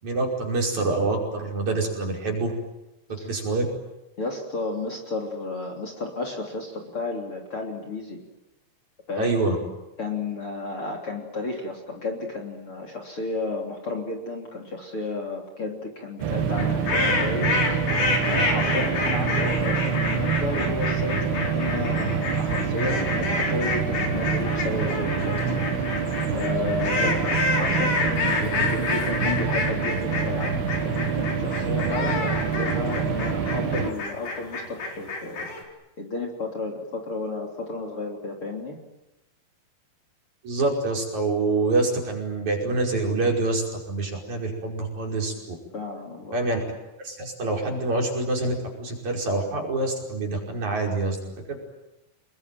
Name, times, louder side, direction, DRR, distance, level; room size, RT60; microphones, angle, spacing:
voice 1, 0.0-2.5 3.2-3.6 9.2-9.6 27.0-27.1 40.4-45.3 46.3-46.6 47.0-51.2, right 2 dB, 45° right, 0 dB, 6.6 m, -26 dB
voice 2, 4.2-8.2 9.1-9.4 10.0-17.8 18.2-26.0 26.3-30.6 30.8-35.5 36.0-38.8 45.7-46.4, left 3 dB, 35° left, 2 dB, 3.9 m, -32 dB
sound 1, 16.2-33.9, right 6 dB, 75° right, 4.0 m, -26 dB
sound 2, 16.5-35.6, left 3 dB, 50° left, 5.8 m, -28 dB
28.0 x 22.5 x 9.2 m, 0.93 s
omnidirectional pair, 4.5 m